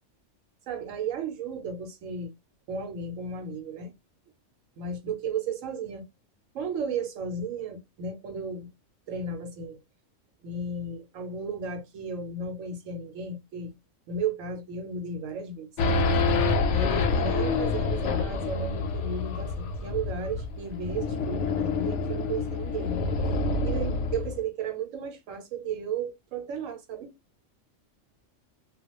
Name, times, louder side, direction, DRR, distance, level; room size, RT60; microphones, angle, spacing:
voice 1, 0.7-2.3 2.7-3.9 4.8-6.0 6.5-8.7 9.1-9.8 10.4-13.7 14.1-16.1 16.7-23.0 23.6-27.2, right 4 dB, 90° right, 1.1 m, -34 dB
Race car auto racing / Idling / Accelerating revving vroom, 15.8-24.4, left 3 dB, 70° left, 0.8 m, -27 dB
2.3 x 2.2 x 2.9 m
omnidirectional pair, 1.3 m